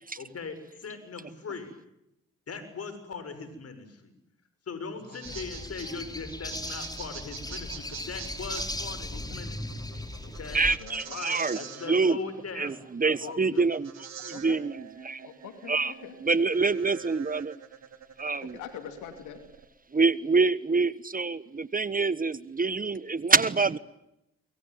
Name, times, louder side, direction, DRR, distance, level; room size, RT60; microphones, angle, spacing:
voice 1, 0.2-1.7 2.5-4.1 4.7-9.8 10.4-10.6 11.0-12.7 13.0-13.6, left 4 dB, 55° left, 11 dB, 6.7 m, -40 dB
sound 1, 4.9-19.7, right 7 dB, 65° right, 4.4 m, -45 dB
voice 2, 5.1-5.4 9.1-9.4 10.6-11.2 11.5-12.0 14.3-14.6 15.2-16.1 18.4-19.4, left 9 dB, 80° left, 8 dB, 2.8 m, -45 dB
sound 2, 5.2-10.8, left 1 dB, 15° left, 3.4 m, -37 dB
voice 3, 10.5-12.2 12.5-15.2 15.7-15.9 16.2-17.6 18.2-18.6 19.9-23.8, right 4 dB, 30° right, 18 dB, 1.2 m, -26 dB
25.5 x 23.0 x 9.5 m, 0.84 s
supercardioid pair, 50°, 30 cm